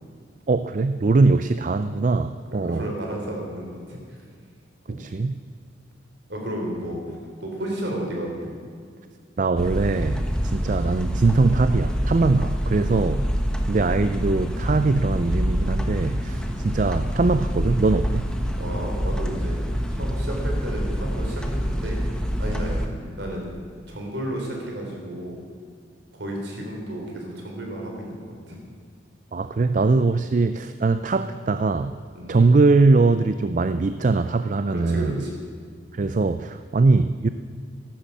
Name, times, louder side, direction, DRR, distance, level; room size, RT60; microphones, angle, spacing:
voice 1, 0.5-2.9 4.9-5.4 9.4-13.3 13.7-18.3 29.3-32.0 32.3-35.2 35.9-37.3, right 3 dB, 40° right, 11 dB, 0.4 m, -21 dB
voice 2, 2.5-4.0 4.9-5.0 6.3-8.5 12.7-13.0 16.2-16.5 18.6-19.6 19.9-22.0 22.4-22.9 23.2-23.5 23.9-25.4 26.1-28.6 32.1-32.4 34.7-35.4, right 1 dB, 60° right, 0 dB, 4.0 m, -32 dB
sound 1, 9.6-22.9, equal, 5° left, 1.2 m, -26 dB
14.0 x 12.0 x 7.3 m, 2.1 s
head